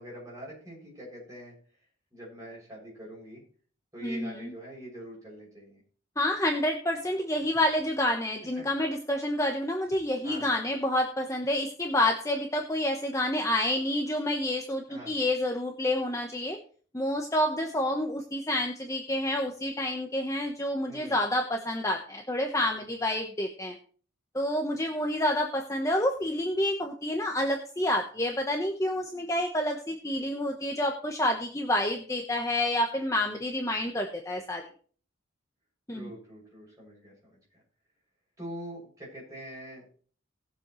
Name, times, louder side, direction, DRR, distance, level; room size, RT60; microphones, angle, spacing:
voice 1, 0.0-1.5 2.1-3.4 3.9-5.8 8.5-8.6 10.2-10.5 14.9-15.2 20.9-21.2 35.9-37.6 38.4-39.8, equal, 15° right, -5 dB, 6.7 m, -44 dB
voice 2, 4.0-4.3 6.2-16.6 16.9-23.7 24.3-34.6 35.9-36.1, left 1 dB, 15° left, 3 dB, 1.0 m, -28 dB
19.0 x 7.5 x 3.1 m, 0.43 s
head